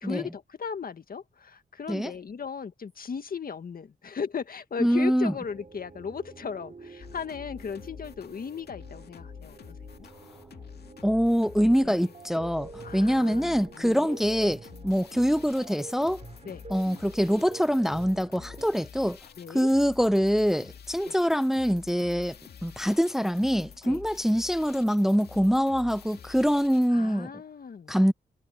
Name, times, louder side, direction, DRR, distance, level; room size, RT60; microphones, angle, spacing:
voice 1, 0.0-9.6 10.0-10.1 11.8-12.1 12.8-14.2 16.4-16.6 19.4-19.7 21.0-21.2 23.9-24.0 26.9-28.0, left 6 dB, 60° left, 1.8 m, -37 dB
voice 2, 4.8-5.3 11.0-16.2 16.7-19.2 19.5-22.4 22.6-27.3 27.9-28.1, equal, ahead, 0.7 m, -24 dB
sound 1, 5.3-18.7, right 4 dB, 40° right, 4.4 m, -48 dB
sound 2, 7.0-26.9, left 7 dB, 80° left, 2.2 m, -48 dB
cardioid pair, 65°, 16 cm